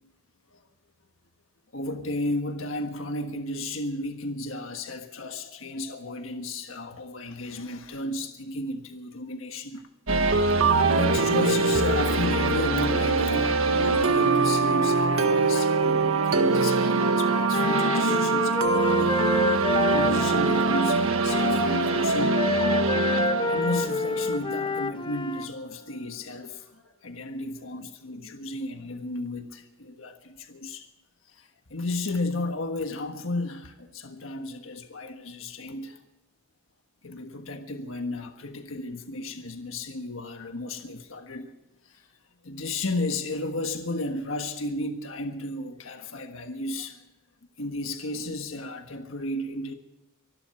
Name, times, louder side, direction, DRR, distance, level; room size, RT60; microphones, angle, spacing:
voice 1, 1.7-9.9 10.5-19.2 19.9-22.4 23.5-30.9 31.3-36.0 37.0-41.5 41.8-42.1 42.4-47.0 47.6-49.7, left 2 dB, 75° left, 1.5 m, -33 dB
sound 1, 10.1-24.9, right 3 dB, 85° right, 1.6 m, -23 dB
Wind instrument woodwind instrument, 17.0-25.5, left 4 dB, 25° left, 0.4 m, -29 dB
25.0 x 12.5 x 4.5 m
head